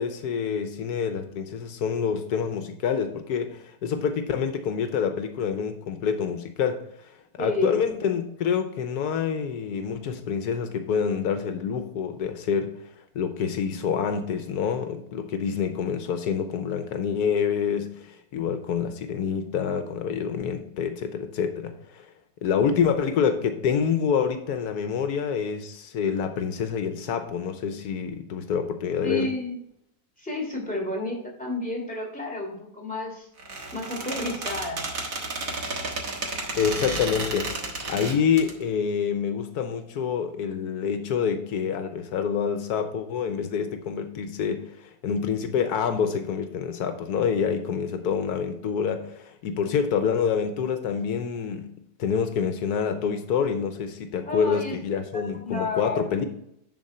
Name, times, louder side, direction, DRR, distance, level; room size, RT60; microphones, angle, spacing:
voice 1, 0.0-6.8 7.3-12.7 13.1-22.1 22.4-29.3 36.5-51.7 52.0-56.2, left 7 dB, 85° left, 7 dB, 1.3 m, -27 dB
voice 2, 7.4-7.8 29.0-29.6 30.2-33.3 33.7-34.8 47.9-48.2 54.3-54.8 55.1-56.0, left 1 dB, 5° left, -2 dB, 2.7 m, -31 dB
Squeak, 33.4-38.5, right 2 dB, 60° right, 1.9 m, -32 dB
10.5 x 4.4 x 4.3 m, 0.74 s
omnidirectional pair, 1.6 m